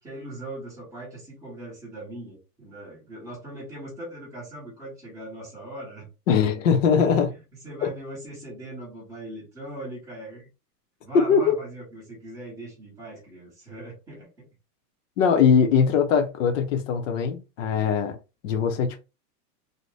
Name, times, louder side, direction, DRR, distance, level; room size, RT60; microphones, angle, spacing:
voice 1, 0.0-6.1 7.6-10.5 11.0-14.4, right 1 dB, 5° right, 0.7 m, -40 dB
voice 2, 6.3-7.3 11.1-11.5 15.2-18.2 18.4-19.0, left 6 dB, 50° left, 0.6 m, -21 dB
2.7 x 2.1 x 3.2 m
supercardioid pair, 175°, 49 cm